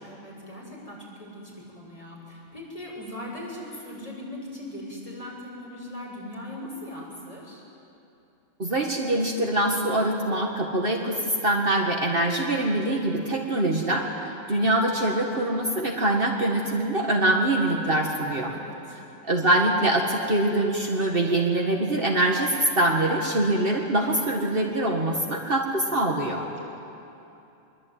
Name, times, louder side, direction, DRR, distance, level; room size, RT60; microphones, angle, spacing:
voice 1, 0.0-7.6 13.2-13.9 18.5-19.0, left 1 dB, 25° left, -4 dB, 7.0 m, -40 dB
voice 2, 8.6-14.0 14.5-18.5 19.3-26.5, right 1 dB, 45° right, 0 dB, 2.1 m, -24 dB
24.5 x 23.0 x 9.4 m, 2.8 s
omnidirectional pair, 1.3 m